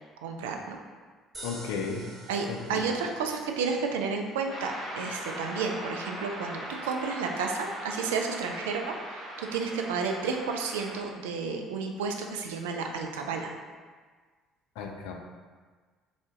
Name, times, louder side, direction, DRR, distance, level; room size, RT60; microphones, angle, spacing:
voice 1, 0.2-0.8 2.3-13.5, right 5 dB, 70° right, 3 dB, 0.3 m, -32 dB
sound 1, 1.3-13.7, right 2 dB, 20° right, 1.1 m, -53 dB
voice 2, 1.4-2.1 2.5-2.9 14.8-15.1, left 5 dB, 65° left, 2 dB, 0.4 m, -34 dB
sound 2, 4.5-11.0, right 1 dB, 50° right, 0.8 m, -40 dB
3.7 x 2.1 x 3.6 m, 1.5 s
figure-of-eight pair, 55°, 0 cm